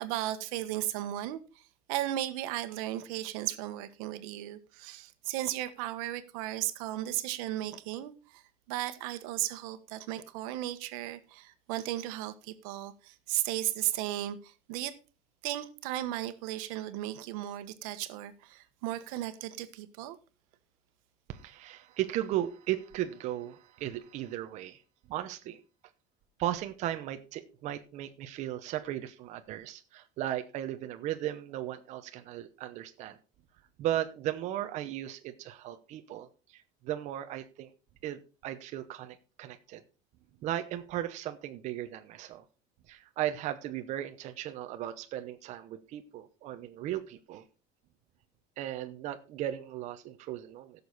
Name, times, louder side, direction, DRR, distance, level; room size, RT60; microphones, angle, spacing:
voice 1, 0.0-8.4 8.7-15.0 15.4-20.2, right 14 dB, 90° right, 1.3 m, -35 dB
voice 2, 21.3-24.8 25.1-25.6 26.4-33.2 33.8-37.7 38.0-39.8 40.4-42.4 42.9-47.4 48.6-50.8, right 12 dB, 40° right, 0.9 m, -36 dB
16.0 x 6.9 x 4.0 m
cardioid pair, 170°, 18 cm